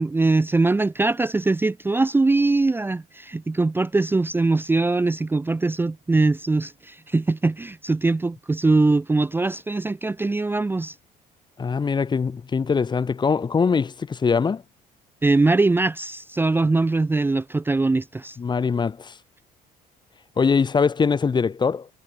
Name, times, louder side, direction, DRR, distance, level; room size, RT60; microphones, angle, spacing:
voice 1, 0.0-10.9 15.2-18.4, right 3 dB, 15° right, 0.6 m, -22 dB
voice 2, 11.6-14.6 18.4-19.1 20.4-21.9, left 5 dB, 25° left, 0.9 m, -22 dB
cardioid pair, 110°, 17 cm